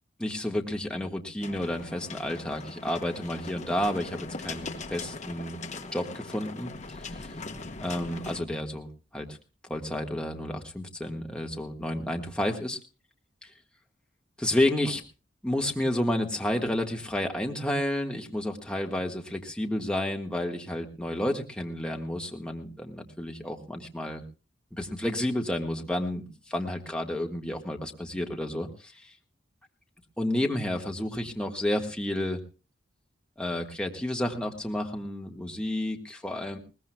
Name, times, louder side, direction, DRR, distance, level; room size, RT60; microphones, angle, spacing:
voice 1, 0.2-5.6 5.9-7.3 7.8-9.4 9.7-12.8 13.4-13.5 14.4-15.0 15.4-24.2 24.7-29.1 30.2-32.4 33.4-36.6, left 1 dB, 5° left, 2 dB, 1.5 m, -31 dB
sound 1, 1.4-8.4, left 3 dB, 40° left, 1.1 m, -40 dB
21.5 x 19.0 x 2.2 m, 0.34 s
head